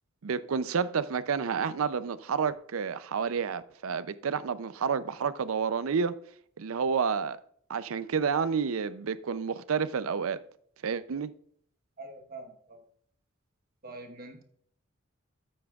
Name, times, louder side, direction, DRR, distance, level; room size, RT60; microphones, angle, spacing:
voice 1, 0.2-6.2 6.6-7.4 7.7-10.4 10.8-11.3, right 6 dB, 75° right, 0.5 m, -30 dB
voice 2, 12.0-12.8 13.8-14.4, right 2 dB, 45° right, 1.1 m, -44 dB
14.0 x 8.6 x 2.4 m
head